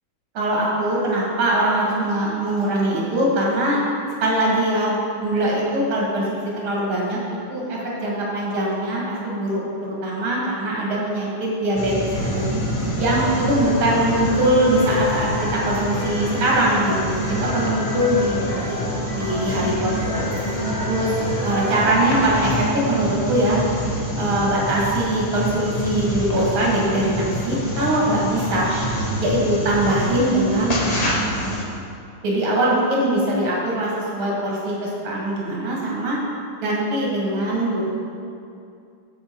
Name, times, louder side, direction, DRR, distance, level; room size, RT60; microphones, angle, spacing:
voice 1, 0.3-3.8 4.2-7.2 7.5-12.5 13.0-18.6 19.1-20.3 20.8-23.6 24.2-28.7 29.2-30.7 31.0-31.1 32.2-36.2 36.6-37.8, right 1 dB, 80° right, -4 dB, 2.4 m, -22 dB
sound 1, 11.8-31.6, equal, 50° left, 0.4 m, -27 dB
sound 2, 12.1-22.1, equal, 75° left, 3.0 m, -30 dB
7.3 x 6.8 x 4.4 m, 2.5 s
omnidirectional pair, 2.2 m